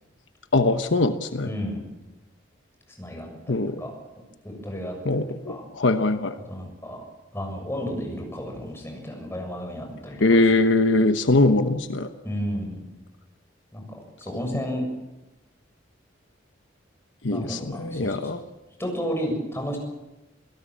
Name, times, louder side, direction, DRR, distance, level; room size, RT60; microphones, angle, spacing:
voice 1, 0.5-1.5 3.5-3.8 5.0-6.3 10.2-12.1 17.2-18.4, left 2 dB, 70° left, 8 dB, 1.1 m, -21 dB
voice 2, 1.4-1.8 3.0-3.3 3.8-3.9 4.4-5.0 5.5-5.6 6.5-7.0 7.3-10.2 10.4-10.5 12.2-12.8 13.7-14.8 17.3-18.4 18.8-19.8, equal, 15° left, 1 dB, 7.0 m, -32 dB
27.5 x 17.0 x 7.6 m, 1.0 s
head